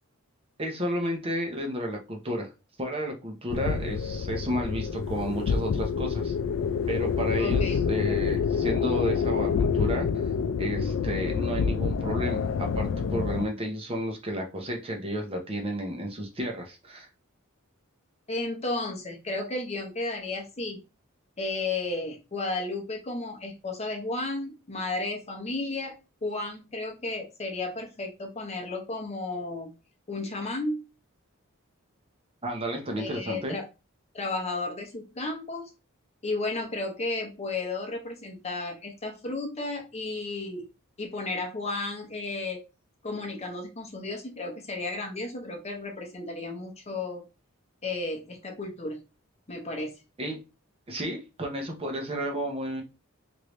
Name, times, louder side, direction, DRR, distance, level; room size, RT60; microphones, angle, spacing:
voice 1, 0.6-2.5 2.8-6.3 6.9-10.1 10.6-17.1 32.4-33.6 50.2-50.4 50.9-52.8, equal, 30° right, 1 dB, 0.7 m, -32 dB
sound 1, 3.5-13.5, left 6 dB, 65° left, 0.3 m, -27 dB
voice 2, 7.4-8.2 18.3-20.8 21.4-25.9 26.2-29.7 30.1-30.8 33.0-33.7 34.1-35.7 36.2-40.6 41.0-42.6 43.0-47.2 47.8-49.0 49.5-49.9, left 2 dB, 30° left, 2 dB, 0.8 m, -33 dB
3.2 x 2.6 x 3.0 m, 0.29 s
head